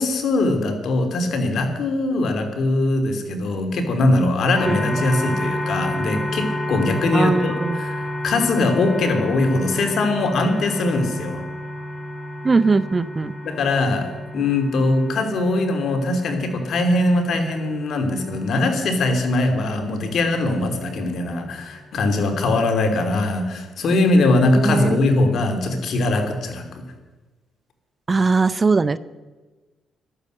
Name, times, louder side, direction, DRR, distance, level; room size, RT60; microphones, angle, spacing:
voice 1, 0.0-11.4 13.4-26.8, left 2 dB, 65° left, 5 dB, 3.2 m, -21 dB
sound 1, 4.5-22.3, left 1 dB, 25° left, 5.2 m, -31 dB
voice 2, 7.1-7.8 12.4-13.3 24.6-25.0 28.1-29.0, right 4 dB, 30° right, 15 dB, 0.6 m, -19 dB
14.5 x 12.5 x 6.6 m, 1.2 s
cardioid pair, 90°, 0 cm